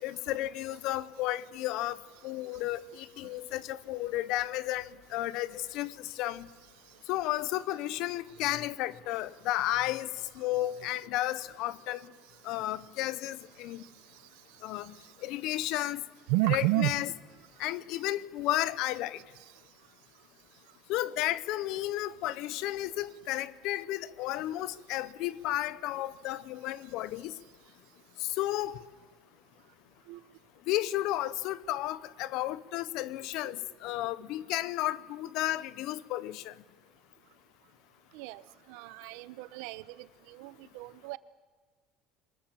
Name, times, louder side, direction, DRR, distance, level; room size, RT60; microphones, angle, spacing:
voice 1, 0.0-2.0 2.2-6.5 7.1-10.1 10.4-12.1 12.4-13.8 14.6-14.9 15.2-16.0 16.5-17.1 17.6-19.2 20.9-27.4 28.2-28.8 30.7-36.5, left 15 dB, 60° left, 0.8 m, -33 dB
voice 2, 16.3-16.9 30.1-30.2 33.4-33.5 38.1-38.4 38.7-41.2, right 19 dB, 75° right, 0.9 m, -31 dB
23.5 x 20.0 x 7.5 m
cardioid pair, 165°, 0 cm